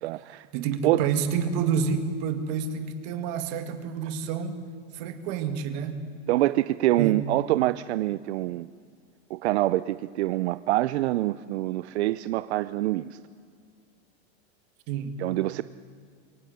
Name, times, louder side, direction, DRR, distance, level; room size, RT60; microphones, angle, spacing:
voice 1, 0.0-0.5 0.8-1.0 6.3-8.7 9.3-13.2 15.2-15.6, right 16 dB, 75° right, 15 dB, 0.6 m, -25 dB
voice 2, 0.5-4.6 4.9-6.1 7.0-7.2 14.9-15.2, right 6 dB, 40° right, 8 dB, 1.9 m, -29 dB
24.0 x 17.0 x 7.9 m, 2.2 s
supercardioid pair, 170°, 33 cm